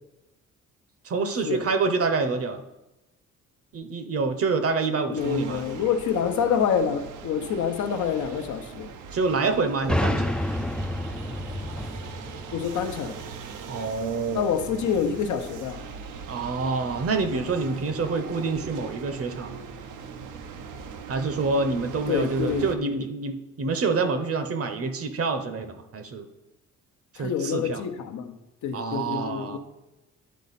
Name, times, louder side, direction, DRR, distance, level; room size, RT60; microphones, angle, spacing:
voice 1, 1.0-2.6 3.7-5.6 9.1-10.4 13.7-14.7 16.3-19.6 21.1-26.3 27.1-27.8 28.7-29.6, right 4 dB, 50° right, 0.9 m, -27 dB
voice 2, 5.1-8.9 12.5-13.2 14.3-15.8 17.3-17.5 22.1-23.0 27.2-29.6, left 7 dB, 75° left, 0.8 m, -27 dB
sound 1, 5.2-22.8, right 6 dB, 85° right, 0.7 m, -40 dB
sound 2, 9.9-13.5, left 1 dB, 5° left, 0.3 m, -29 dB
10.5 x 4.2 x 4.1 m
cardioid pair, 90°, 30 cm